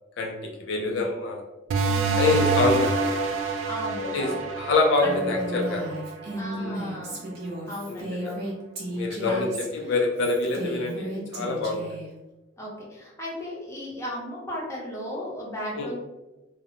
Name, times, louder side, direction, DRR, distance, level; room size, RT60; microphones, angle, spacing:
voice 1, 0.2-1.4 2.1-3.1 4.1-5.8 6.6-6.8 7.9-8.3 8.9-12.0 15.8-15.9, left 3 dB, 65° left, 0 dB, 0.4 m, -26 dB
voice 2, 0.7-1.1 1.9-2.4 3.7-4.4 5.0-5.2 6.3-7.2 7.7-8.5 9.3-9.4 12.6-15.9, equal, 15° left, -5 dB, 0.6 m, -36 dB
sound 1, 1.7-6.9, right 4 dB, 85° right, 0.3 m, -27 dB
Female speech woman speaking, 5.0-12.1, right 1 dB, 55° right, 0.7 m, -34 dB
2.4 x 2.0 x 2.7 m, 1.1 s
head